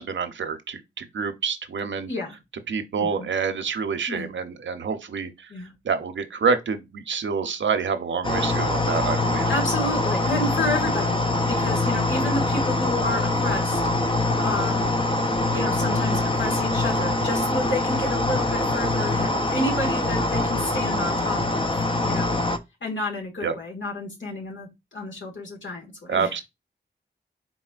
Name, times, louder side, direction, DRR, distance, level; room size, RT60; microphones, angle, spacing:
voice 1, 0.0-2.1 2.7-5.5 5.8-9.5 23.4-23.5 26.1-26.4, right 5 dB, 80° right, 0.6 m, -27 dB
voice 2, 3.0-3.3 4.1-4.3 5.5-5.7 9.5-11.2 11.5-15.0 15.5-21.7 22.0-22.4 22.8-26.4, left 1 dB, 80° left, 1.7 m, -30 dB
sound 1, 8.2-22.6, left 2 dB, 25° left, 0.6 m, -24 dB
4.2 x 4.0 x 2.4 m
cardioid pair, 45°, 19 cm